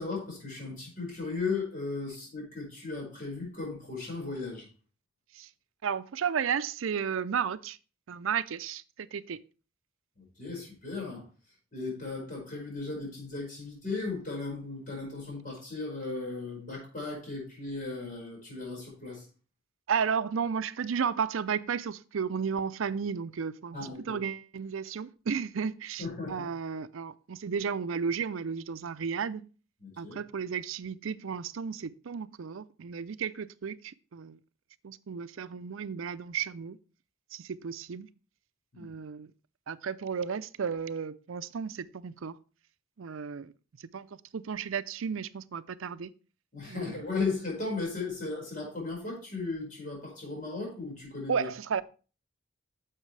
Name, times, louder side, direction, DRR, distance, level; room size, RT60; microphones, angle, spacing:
voice 1, 0.0-4.7 10.2-11.2 11.7-19.2 23.7-24.2 26.0-26.5 29.8-30.2 38.7-38.9 46.5-51.5, left 3 dB, 40° left, 5.0 m, -36 dB
voice 2, 5.8-7.8 8.1-9.4 19.9-23.8 24.1-29.5 30.0-34.4 34.8-36.8 37.3-38.1 38.8-39.3 39.7-42.4 43.0-43.5 43.9-46.1 46.7-47.0 51.3-51.8, right 6 dB, 80° right, 0.5 m, -33 dB
10.0 x 7.3 x 3.3 m
head